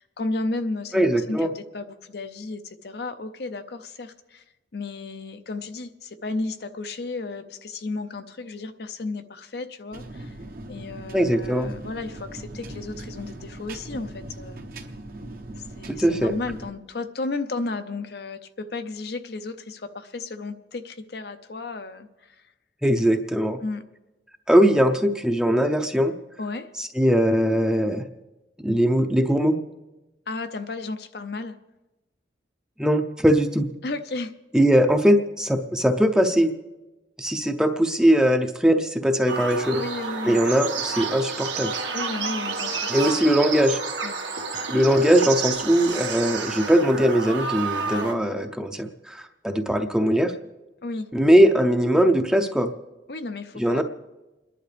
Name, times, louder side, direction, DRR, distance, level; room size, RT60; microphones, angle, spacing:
voice 1, 0.0-4.4 4.7-10.4 10.7-14.6 15.6-22.4 23.6-23.8 26.4-26.7 30.3-31.5 33.8-34.3 39.7-40.4 41.9-43.3 44.0-44.2 50.8-51.1 53.1-53.8, left 3 dB, 60° left, 9 dB, 0.6 m, -33 dB
voice 2, 0.9-1.5 11.1-11.7 15.9-16.3 22.8-23.6 24.5-26.1 26.8-28.0 28.6-29.5 32.8-33.7 34.5-36.5 37.2-39.8 40.3-41.8 42.9-43.8 44.7-50.3 51.1-52.7 53.6-53.8, equal, 5° right, 6 dB, 0.6 m, -20 dB
sound 1, 9.9-16.7, right 1 dB, 50° right, 1.0 m, -39 dB
sound 2, 39.3-48.1, right 5 dB, 90° right, 1.9 m, -30 dB
29.5 x 10.5 x 3.4 m, 1.1 s
head